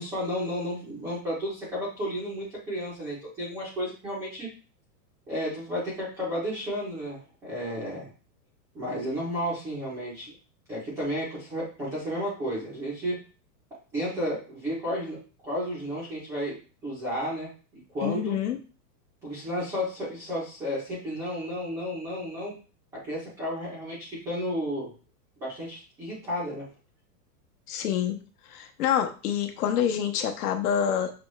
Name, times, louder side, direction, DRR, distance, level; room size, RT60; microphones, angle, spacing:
voice 1, 0.0-4.5 5.3-8.1 8.7-10.3 10.7-13.2 13.9-15.2 15.4-16.6 16.8-17.5 17.9-18.3 19.2-22.5 22.9-24.9 25.4-26.7, equal, 5° right, -8 dB, 0.4 m, -32 dB
voice 2, 18.0-18.6 27.7-28.2 28.5-31.1, left 9 dB, 65° left, 5 dB, 0.9 m, -27 dB
6.1 x 2.2 x 3.0 m, 0.35 s
supercardioid pair, 160°, 49 cm